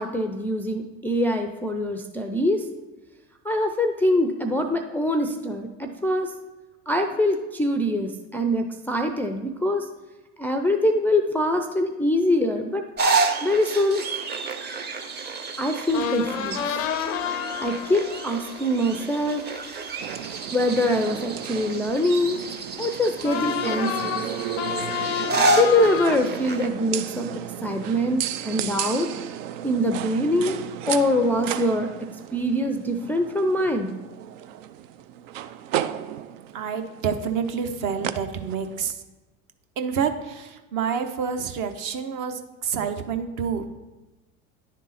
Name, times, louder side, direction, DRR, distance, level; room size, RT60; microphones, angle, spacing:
voice 1, 0.0-2.6 3.4-6.3 6.9-9.9 10.4-12.8 13.4-14.0 15.6-16.8 17.6-19.4 20.5-22.4 22.8-24.2 25.5-27.3 27.6-29.1 29.6-31.9 32.3-33.9, left 1 dB, 5° left, 3 dB, 0.3 m, -24 dB
sound 1, 13.0-26.7, right 3 dB, 25° right, 0.7 m, -30 dB
sound 2, 15.9-20.7 23.2-26.2, left 9 dB, 90° left, 0.5 m, -30 dB
sound 3, 20.0-38.9, right 11 dB, 80° right, 0.5 m, -34 dB
voice 2, 36.5-39.0 39.8-43.7, right 6 dB, 55° right, 7 dB, 0.9 m, -28 dB
10.0 x 3.7 x 4.1 m, 1.1 s
hypercardioid pair, 85°, 38 cm